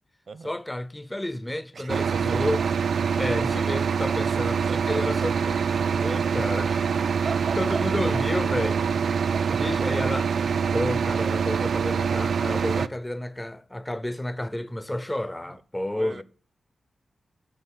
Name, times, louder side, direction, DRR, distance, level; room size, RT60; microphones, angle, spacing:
voice 1, 0.4-2.6 3.2-6.9 7.6-8.8 9.6-10.3 10.7-16.2, left 1 dB, 10° left, 0.5 m, -30 dB
voice 2, 1.7-2.4 4.7-5.3 7.2-7.8 8.7-8.8 9.3-10.0 14.9-15.0 15.9-16.2, right 4 dB, 55° right, 0.7 m, -38 dB
sound 1, 1.9-12.9, right 6 dB, 75° right, 0.4 m, -25 dB
13.0 x 6.2 x 6.9 m
wide cardioid pair, 145°, 0 cm